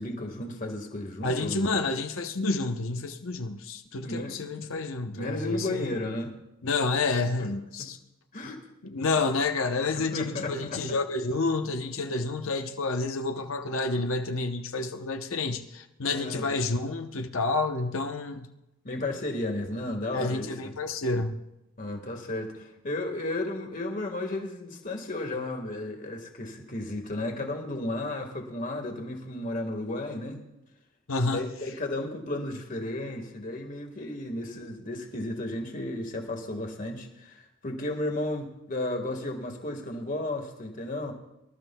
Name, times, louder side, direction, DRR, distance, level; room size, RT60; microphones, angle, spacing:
voice 1, 0.0-1.8 4.0-4.4 5.1-6.3 7.4-7.5 7.8-7.9 8.3-8.6 9.9-10.8 16.1-16.5 18.8-20.8 21.8-30.4 31.2-41.1, left 1 dB, 40° left, 1.6 m, -33 dB
voice 2, 1.2-5.9 6.6-8.0 8.8-18.5 20.1-21.4 31.1-31.4, left 3 dB, 80° left, 0.8 m, -29 dB
25.0 x 12.5 x 2.3 m
head